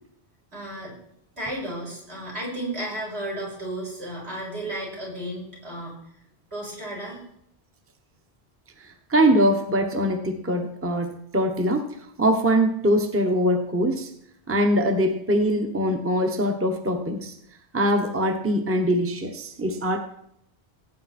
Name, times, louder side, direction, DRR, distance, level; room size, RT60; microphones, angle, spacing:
voice 1, 0.5-0.9 1.4-5.9 6.5-7.2, right 1 dB, 75° right, -4 dB, 5.8 m, -33 dB
voice 2, 8.8-14.1 14.5-17.3 17.7-20.0, equal, 15° right, 4 dB, 1.0 m, -23 dB
16.5 x 9.0 x 4.3 m, 0.73 s
omnidirectional pair, 1.1 m